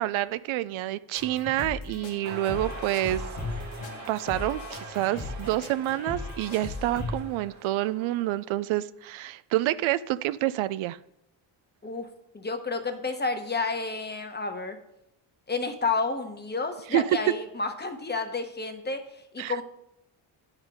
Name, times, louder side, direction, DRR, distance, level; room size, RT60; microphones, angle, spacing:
voice 1, 0.0-3.2 4.1-11.0 16.9-17.0 19.4-19.6, right 15 dB, 70° right, 15 dB, 0.5 m, -28 dB
sound 1, 1.1-7.2, left 3 dB, 90° left, 1.8 m, -37 dB
sound 2, 2.2-8.6, right 4 dB, 35° right, 1.4 m, -44 dB
voice 2, 12.3-14.8 15.5-19.6, left 3 dB, 20° left, 7 dB, 1.0 m, -30 dB
9.2 x 5.0 x 5.0 m, 0.80 s
cardioid pair, 90°, 49 cm